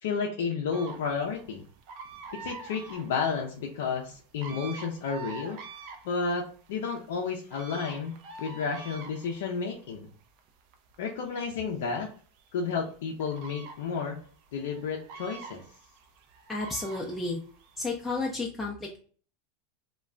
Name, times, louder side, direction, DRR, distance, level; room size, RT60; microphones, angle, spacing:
voice 1, 0.0-1.6 2.3-5.6 6.0-10.1 11.0-12.1 12.5-14.2 14.5-15.6, left 5 dB, 75° left, 0 dB, 0.4 m, -32 dB
sound 1, 0.7-18.3, right 4 dB, 55° right, 0.5 m, -47 dB
voice 2, 16.5-17.4 17.8-19.0, left 3 dB, 10° left, -4 dB, 0.5 m, -32 dB
2.4 x 2.2 x 3.1 m, 0.42 s
hypercardioid pair, 110°, 0 cm